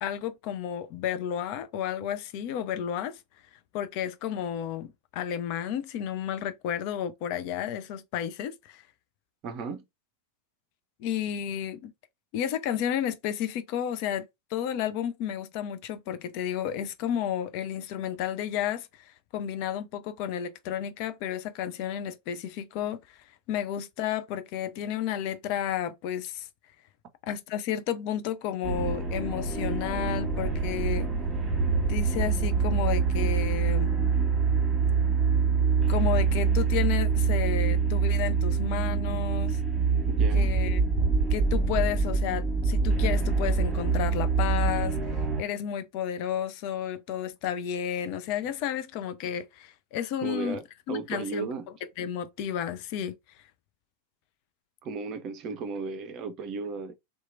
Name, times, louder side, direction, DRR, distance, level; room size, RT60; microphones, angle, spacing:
voice 1, 0.0-3.2 3.7-8.8 11.0-11.9 12.3-14.2 14.5-18.9 19.3-26.5 27.2-31.1 31.9-33.9 35.9-39.6 40.3-40.8 41.3-45.0 45.4-50.6 50.9-51.5 52.0-53.1, left 9 dB, 45° left, 0.4 m, -32 dB
voice 2, 9.4-9.8 40.1-40.6 50.2-51.7 54.8-56.9, right 4 dB, 35° right, 0.5 m, -35 dB
sound 1, 28.6-45.4, right 5 dB, 20° right, 1.3 m, -25 dB
2.8 x 2.3 x 2.5 m
figure-of-eight pair, 90°, 0 cm